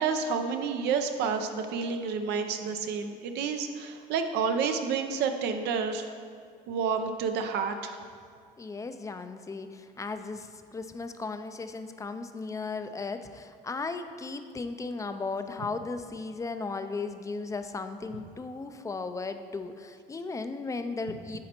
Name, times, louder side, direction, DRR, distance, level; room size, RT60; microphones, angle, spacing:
voice 1, 0.0-6.1 6.7-8.0, right 5 dB, 85° right, 6 dB, 0.6 m, -29 dB
voice 2, 8.6-21.4, left 3 dB, 20° left, 9 dB, 0.4 m, -36 dB
9.8 x 4.2 x 4.4 m, 2.2 s
cardioid pair, 110°, 17 cm